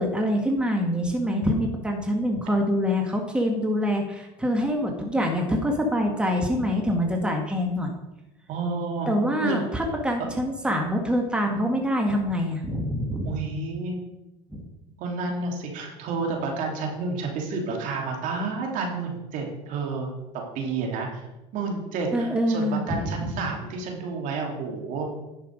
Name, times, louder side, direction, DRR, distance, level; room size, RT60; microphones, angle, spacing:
voice 1, 0.0-7.9 9.1-13.3 14.5-14.6 22.1-23.3, equal, 5° right, 1 dB, 1.8 m, -25 dB
voice 2, 8.5-9.1 9.4-9.6 13.2-14.0 15.0-20.1 20.5-21.2 21.5-25.1, right 4 dB, 65° right, 0 dB, 2.9 m, -30 dB
10.5 x 5.9 x 5.2 m, 0.96 s
supercardioid pair, 85°, 15 cm